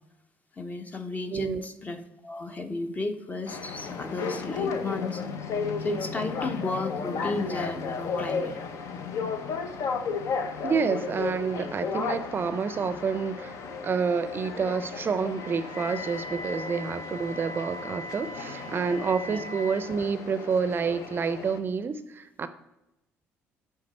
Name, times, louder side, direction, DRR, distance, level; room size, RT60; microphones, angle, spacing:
voice 1, 0.6-5.2 5.8-8.5 19.3-19.4, left 3 dB, 25° left, 7 dB, 0.8 m, -34 dB
voice 2, 1.3-1.7 10.6-22.5, right 5 dB, 40° right, 12 dB, 0.4 m, -29 dB
sound 1, 3.5-21.6, left 5 dB, 65° left, 0.7 m, -34 dB
Wind instrument woodwind instrument, 15.3-19.9, equal, 90° left, 1.6 m, -41 dB
7.8 x 3.7 x 4.3 m, 0.93 s
supercardioid pair, 70°, 6 cm